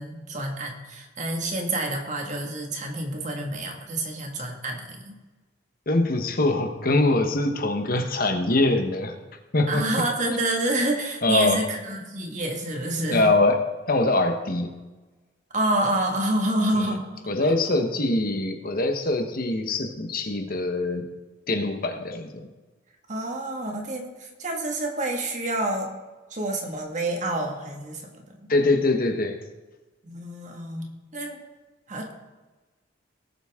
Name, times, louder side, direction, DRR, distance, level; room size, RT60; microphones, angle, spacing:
voice 1, 0.0-5.2 9.7-13.3 15.5-17.0 17.4-17.5 23.1-25.9 26.3-28.5 30.0-31.4 31.9-32.1, right 1 dB, 40° right, 1 dB, 2.0 m, -28 dB
voice 2, 5.9-9.1 9.5-9.9 11.2-11.6 13.1-13.6 13.9-14.7 16.8-16.9 17.3-21.0 21.5-22.5 28.5-29.3, left 2 dB, 45° left, 5 dB, 1.2 m, -23 dB
18.5 x 8.1 x 3.7 m, 1.2 s
head